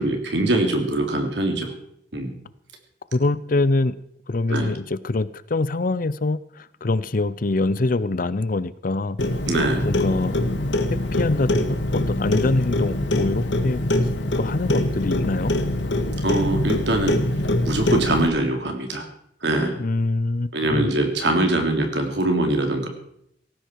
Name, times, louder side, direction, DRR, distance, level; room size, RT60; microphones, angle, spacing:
voice 1, 0.0-1.7 2.1-2.3 4.5-4.7 9.5-9.9 16.2-17.2 17.7-19.0 19.4-19.8 20.5-22.9, right 1 dB, 70° right, 4 dB, 3.2 m, -22 dB
voice 2, 3.1-3.9 4.3-9.2 9.8-10.4 10.9-13.8 14.4-15.5 19.8-20.9, left 2 dB, 50° left, 16 dB, 0.6 m, -24 dB
Clock, 9.2-18.3, left 1 dB, 80° left, 1.7 m, -23 dB
18.0 x 15.0 x 4.7 m, 0.72 s
head